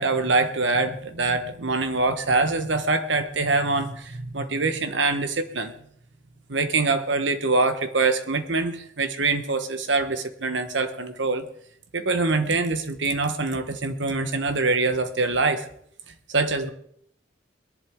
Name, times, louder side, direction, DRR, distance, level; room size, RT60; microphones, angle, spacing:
voice 1, 0.0-5.7 6.5-11.5 11.9-15.7 16.3-16.7, right 3 dB, 75° right, 9 dB, 1.3 m, -24 dB
21.5 x 11.0 x 3.7 m, 0.69 s
head